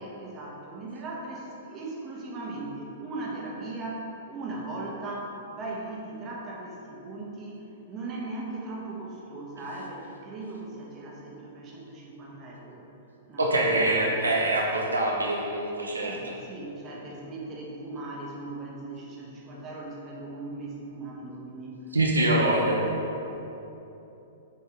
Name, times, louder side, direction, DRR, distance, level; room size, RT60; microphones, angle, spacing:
voice 1, 0.0-12.9 13.3-14.1 16.0-21.9 22.2-22.9, right 2 dB, 25° right, -3 dB, 1.4 m, -38 dB
voice 2, 13.4-16.1 21.9-22.8, right 1 dB, 75° right, -1 dB, 0.8 m, -24 dB
7.2 x 4.6 x 4.5 m, 3.0 s
figure-of-eight pair, 105°, 0 cm